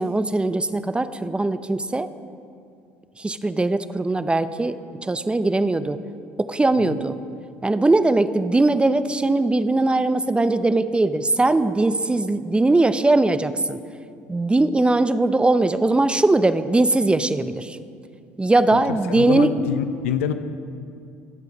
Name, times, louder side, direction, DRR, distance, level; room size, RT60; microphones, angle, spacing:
voice 1, 0.0-2.1 3.2-4.7 5.0-6.0 6.4-7.2 7.6-13.8 14.3-17.8 18.4-19.5, right 2 dB, 15° right, 12 dB, 0.7 m, -20 dB
voice 2, 18.9-20.3, left 8 dB, 80° left, 10 dB, 0.7 m, -26 dB
22.0 x 8.2 x 5.4 m, 2.4 s
hypercardioid pair, 65°, 7 cm